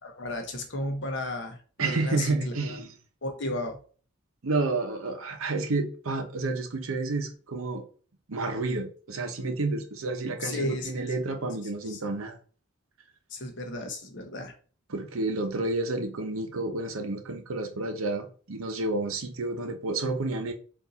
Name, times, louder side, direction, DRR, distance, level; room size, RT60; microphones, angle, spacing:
voice 1, 0.0-2.8 3.2-3.8 10.4-11.1 11.9-12.0 13.3-14.5, left 1 dB, 55° left, 1.0 m, -34 dB
voice 2, 1.8-2.9 4.4-7.8 8.3-12.4 14.9-20.5, right 2 dB, 80° right, 0.8 m, -30 dB
4.5 x 2.6 x 4.0 m
head